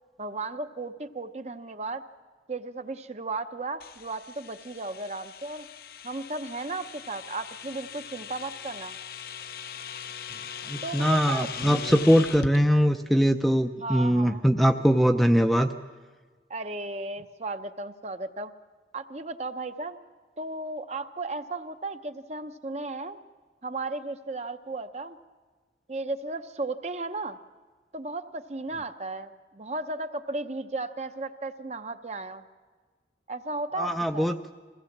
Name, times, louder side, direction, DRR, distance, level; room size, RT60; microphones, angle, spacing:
voice 1, 0.2-2.0 2.5-5.7 6.0-8.9 10.8-11.5 13.8-14.4 16.5-18.5 18.9-20.0 20.4-23.2 23.6-25.2 25.9-27.4 27.9-32.4 33.3-34.3, right 2 dB, 40° right, 9 dB, 0.7 m, -35 dB
sound 1, 3.8-12.6, left 7 dB, 55° left, 0.6 m, -40 dB
voice 2, 10.7-15.7 33.8-34.4, equal, ahead, 5 dB, 0.5 m, -22 dB
22.5 x 16.5 x 7.3 m, 1.4 s
head